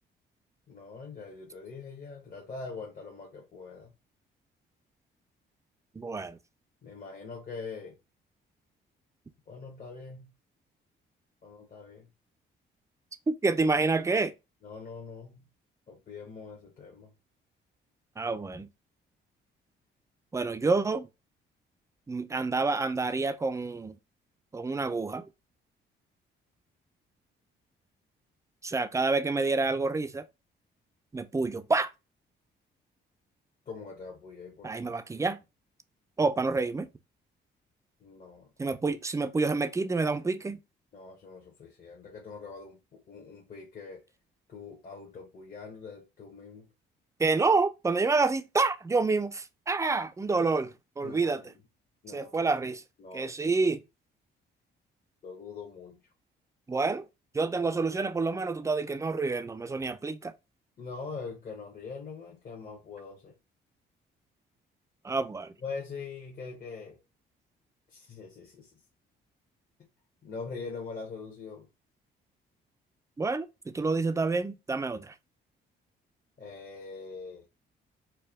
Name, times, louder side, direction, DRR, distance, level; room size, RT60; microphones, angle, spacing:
voice 1, 0.7-3.9 6.8-8.0 9.5-10.3 11.4-12.1 14.6-15.5 15.9-17.1 33.7-34.7 38.0-38.5 40.9-44.0 44.5-46.7 51.0-51.5 52.0-52.3 53.0-53.3 55.2-56.0 60.8-63.3 65.6-67.0 67.9-68.7 70.2-71.7 76.4-77.5, left 4 dB, 45° left, 1.1 m, -43 dB
voice 2, 6.0-6.4 13.3-14.3 18.2-18.7 20.3-21.1 22.1-23.9 24.5-25.3 28.6-30.2 31.1-31.9 34.6-35.4 36.2-36.9 38.6-40.6 47.2-51.4 52.1-52.8 53.1-53.8 56.7-57.1 57.3-60.3 65.0-65.5 73.2-75.1, right 3 dB, 15° right, 0.4 m, -28 dB
4.5 x 2.2 x 3.4 m
cardioid pair, 90°, 20 cm